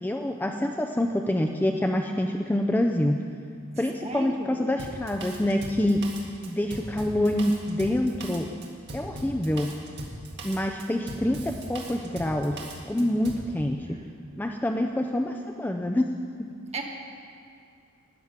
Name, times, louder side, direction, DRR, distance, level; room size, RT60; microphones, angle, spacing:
voice 1, 0.0-3.2 3.8-6.0 6.4-8.5 8.9-9.7 10.4-14.0 14.4-16.1, left 1 dB, 10° left, 4 dB, 0.4 m, -26 dB
voice 2, 4.0-4.7 13.9-14.1 16.7-16.8, right 3 dB, 30° right, 1 dB, 1.3 m, -35 dB
Drum kit, 4.8-13.5, right 1 dB, 55° right, 1.7 m, -39 dB
13.0 x 6.1 x 9.6 m, 2.4 s
head